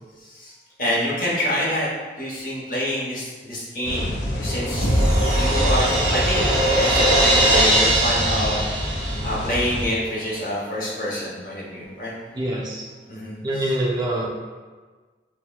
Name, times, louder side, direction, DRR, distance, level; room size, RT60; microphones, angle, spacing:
voice 1, 0.2-0.5 0.8-1.9 2.2-4.9 5.4-6.4 6.7-8.6 9.2-12.1 13.1-13.8, equal, 50° left, -6 dB, 0.9 m, -27 dB
sound 1, 3.8-9.9, equal, 85° left, 0.6 m, -28 dB
Crash cymbal, 3.9-9.6, right 1 dB, 40° right, 0.7 m, -22 dB
sound 2, 4.8-9.1, equal, 5° right, 1.4 m, -26 dB
voice 2, 12.3-12.8 13.4-14.3, right 1 dB, 25° right, -3 dB, 0.3 m, -25 dB
5.7 x 2.1 x 2.2 m, 1.4 s
head